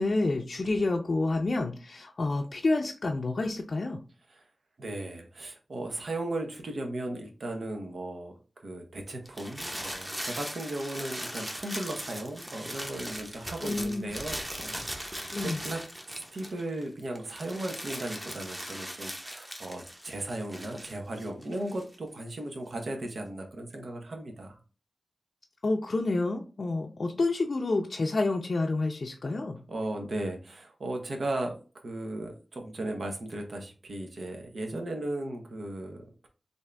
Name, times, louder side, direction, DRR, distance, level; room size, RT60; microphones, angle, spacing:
voice 1, 0.0-4.0 13.6-14.1 15.3-15.6 25.6-29.6, left 2 dB, 60° left, 1 dB, 0.4 m, -29 dB
voice 2, 4.8-8.3 8.6-24.6 29.7-31.6 31.8-36.3, right 1 dB, 75° right, 3 dB, 0.8 m, -36 dB
sound 1, 9.2-16.8 17.1-21.9, equal, 15° right, 0.8 m, -39 dB
3.5 x 2.6 x 3.3 m, 0.35 s
wide cardioid pair, 65°, 0 cm